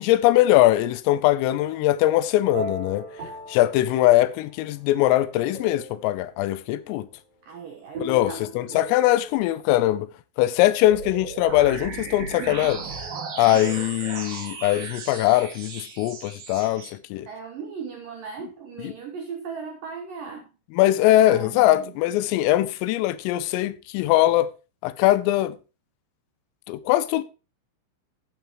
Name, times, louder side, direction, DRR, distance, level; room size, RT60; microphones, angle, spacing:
voice 1, 0.0-3.1 3.5-7.1 8.0-10.1 10.4-12.8 13.4-17.3 18.8-18.9 20.8-24.5 24.8-25.6 26.7-27.2, left 15 dB, 85° left, 3.4 m, -21 dB
sound 1, 2.4-4.6 5.1-6.2 7.9-9.4, right 1 dB, 40° right, 3.7 m, -38 dB
voice 2, 7.5-8.8 17.3-20.5 21.2-21.9 22.2-22.3, right 6 dB, 75° right, 2.0 m, -38 dB
sound 2, 10.9-16.9, right 5 dB, 55° right, 3.2 m, -36 dB
12.0 x 9.2 x 3.0 m
omnidirectional pair, 5.9 m